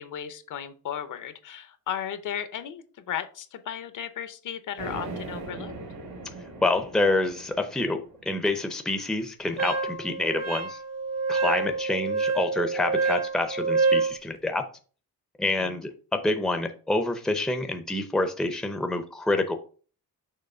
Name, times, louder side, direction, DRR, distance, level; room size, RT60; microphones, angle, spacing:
voice 1, 0.0-5.7 11.5-11.7 15.6-15.8, left 9 dB, 60° left, 11 dB, 0.7 m, -35 dB
sound 1, 4.8-8.7, right 2 dB, 80° right, 3.5 m, -39 dB
voice 2, 6.6-10.8 11.3-14.6 15.4-19.6, left 2 dB, ahead, 7 dB, 0.6 m, -27 dB
Wind instrument woodwind instrument, 9.6-14.2, right 4 dB, 45° right, 0.8 m, -27 dB
6.5 x 3.1 x 5.4 m, 0.39 s
cardioid pair, 140°, 35 cm